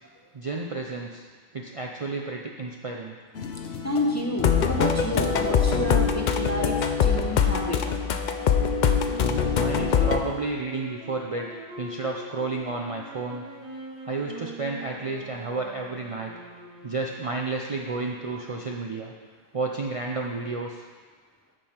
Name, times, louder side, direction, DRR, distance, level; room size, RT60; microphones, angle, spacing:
voice 1, 0.3-1.2 1.5-3.1 9.6-11.5 11.8-13.5 14.0-16.3 16.8-19.1 19.5-20.8, right 3 dB, 40° right, 0 dB, 0.5 m, -31 dB
sound 1, 3.3-6.2, left 6 dB, 75° left, 1.0 m, -39 dB
voice 2, 3.8-7.8, left 1 dB, 15° left, 0 dB, 0.7 m, -29 dB
sound 2, 4.4-10.2, left 7 dB, 55° left, 0.6 m, -23 dB
sound 3, 7.1-17.5, right 2 dB, 25° right, 1.6 m, -43 dB
9.0 x 6.5 x 4.4 m, 1.5 s
omnidirectional pair, 1.1 m